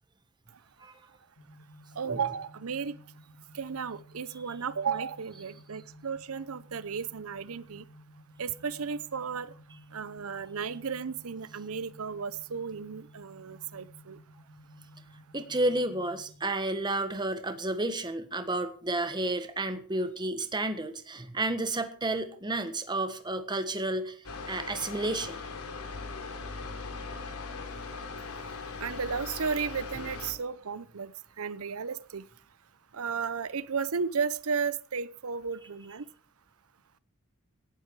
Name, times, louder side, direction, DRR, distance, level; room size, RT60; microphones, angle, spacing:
sound 1, 1.4-16.4, equal, 60° left, 3.4 m, -54 dB
voice 1, 2.0-3.0 3.5-7.8 8.4-9.5 9.9-14.2 28.8-32.3 32.9-36.0, right 6 dB, 75° right, 17 dB, 0.7 m, -34 dB
voice 2, 15.3-24.2 24.5-25.4, right 2 dB, 20° right, 9 dB, 1.5 m, -31 dB
sound 2, 24.2-30.3, left 4 dB, 85° left, 3.5 m, -39 dB
17.5 x 12.5 x 4.7 m, 0.43 s
head